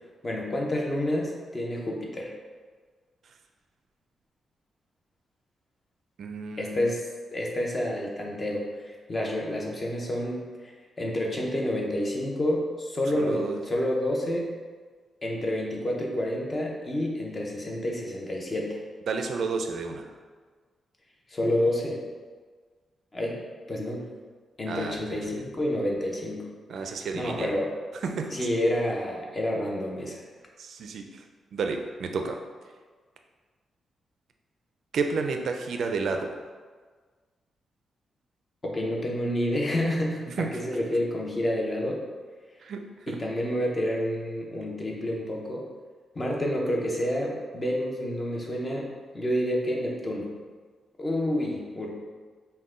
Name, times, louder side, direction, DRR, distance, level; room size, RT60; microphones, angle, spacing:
voice 1, 0.2-2.3 6.6-10.7 11.0-14.5 15.2-18.8 21.3-22.0 23.1-23.4 23.7-24.1 24.6-26.5 27.1-27.7 28.3-30.2 38.6-42.0 43.1-45.7 46.1-48.9 49.1-50.3 51.0-51.9, left 1 dB, 25° left, -1 dB, 0.7 m, -29 dB
voice 2, 6.2-6.9 13.1-13.6 19.1-20.1 24.7-25.0 25.4-25.5 26.7-27.5 28.0-28.5 30.6-31.2 31.5-32.4 34.9-36.4 40.3-40.5 42.6-43.2, right 4 dB, 65° right, 5 dB, 0.4 m, -31 dB
5.5 x 2.2 x 3.7 m, 1.5 s
wide cardioid pair, 130°, 0 cm